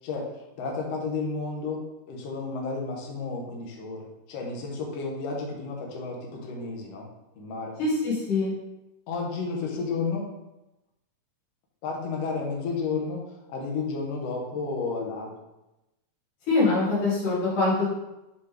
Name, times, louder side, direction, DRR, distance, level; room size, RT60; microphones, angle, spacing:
voice 1, 0.0-7.1 7.4-7.8 9.1-10.3 11.8-15.3, left 4 dB, 60° left, -1 dB, 2.0 m, -32 dB
voice 2, 7.8-8.5 16.5-17.9, left 3 dB, 80° left, -8 dB, 3.4 m, -24 dB
7.8 x 4.2 x 3.4 m, 0.94 s
omnidirectional pair, 3.6 m